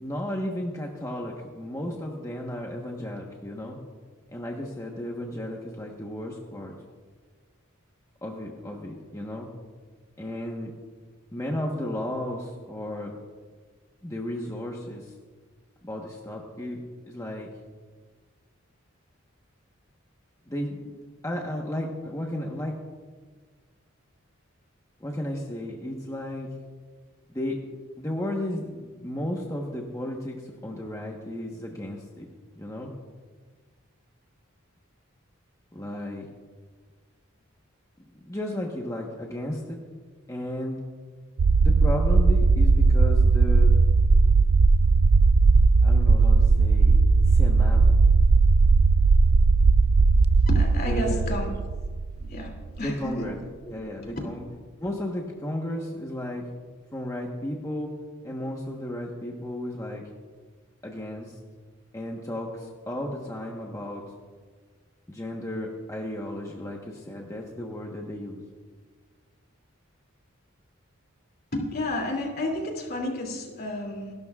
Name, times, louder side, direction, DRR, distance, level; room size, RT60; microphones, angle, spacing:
voice 1, 0.0-3.8 4.3-6.7 8.2-9.5 10.2-10.7 11.3-13.2 14.0-15.1 15.8-17.5 20.5-21.0 21.2-22.8 25.0-26.5 27.3-27.6 28.0-32.3 32.5-32.9 35.7-36.3 38.3-39.8 40.3-40.8 41.6-43.7 45.8-47.0 47.3-48.0 50.9-51.4 52.8-53.4 53.6-54.4 54.8-56.5 56.9-57.9 58.2-60.0 60.8-61.4 61.9-64.0 65.1-68.4, left 1 dB, 15° left, -1 dB, 1.2 m, -34 dB
sound 1, 41.4-52.9, right 4 dB, 90° right, 0.5 m, -18 dB
voice 2, 50.5-51.5 52.2-53.3 54.0-54.2 71.5-74.1, left 1 dB, 50° left, 1 dB, 2.7 m, -31 dB
28.0 x 12.5 x 2.4 m, 1.5 s
head